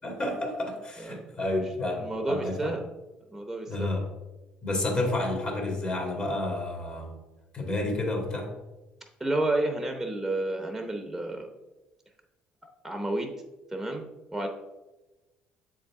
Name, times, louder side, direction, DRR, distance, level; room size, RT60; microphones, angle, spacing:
voice 1, 0.0-2.7 3.7-4.0 4.6-7.1 7.5-8.5, left 2 dB, 35° left, 1 dB, 2.1 m, -30 dB
voice 2, 2.0-2.8 3.3-3.9 9.2-11.5 12.8-13.3 13.7-14.0 14.3-14.5, right 2 dB, 5° right, 3 dB, 0.8 m, -30 dB
7.2 x 3.8 x 3.6 m, 1.1 s
supercardioid pair, 80°, 3 cm